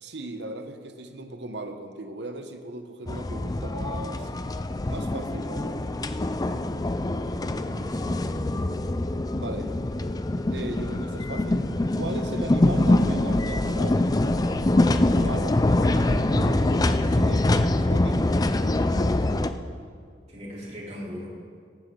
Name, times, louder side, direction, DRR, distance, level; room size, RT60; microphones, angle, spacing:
voice 1, 0.0-4.3 4.9-5.8 9.3-9.7 10.5-11.6 11.9-14.2 15.1-15.6 16.1-18.4, right 2 dB, 75° right, 7 dB, 1.1 m, -38 dB
sound 1, 3.1-19.5, left 1 dB, 20° left, 0.5 m, -24 dB
voice 2, 7.4-8.7 20.3-21.3, equal, 40° right, -5 dB, 3.7 m, -40 dB
sound 2, 12.8-13.9 14.6-15.0 15.6-16.0, left 2 dB, 70° left, 2.0 m, -41 dB
17.0 x 15.0 x 3.9 m, 2.1 s
head